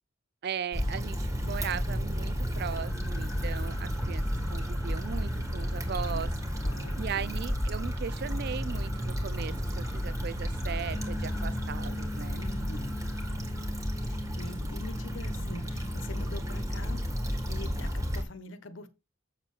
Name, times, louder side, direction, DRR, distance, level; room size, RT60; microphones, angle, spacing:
voice 1, 0.4-4.2 4.5-6.3 7.0-12.4, right 7 dB, 55° right, 0.4 m, -38 dB
Stream / Traffic noise roadway noise / Trickle dribble, 0.7-18.2, equal, 15° right, 1.7 m, -32 dB
sound 1, 2.6-16.0, left 1 dB, 5° left, 1.7 m, -52 dB
voice 2, 6.6-7.4 12.3-12.9 14.0-18.9, left 2 dB, 80° left, 1.0 m, -44 dB
sound 2, 10.9-17.9, left 3 dB, 20° left, 0.4 m, -43 dB
7.5 x 6.6 x 3.2 m
head